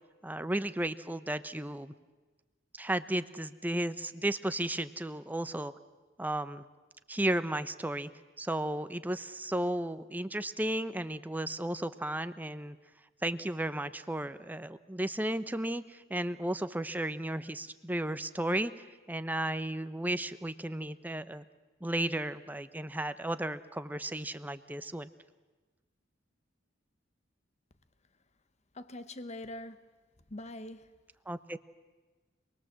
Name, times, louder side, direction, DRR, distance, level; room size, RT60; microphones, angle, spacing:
voice 1, 0.2-1.9 2.8-5.7 6.2-6.6 7.1-8.1 8.4-12.8 13.2-18.7 19.1-21.4 21.8-25.1 31.3-31.6, right 1 dB, 10° right, 0.7 m, -34 dB
voice 2, 28.7-29.8 30.3-30.9, left 1 dB, 35° left, 1.1 m, -43 dB
26.5 x 20.5 x 7.6 m
head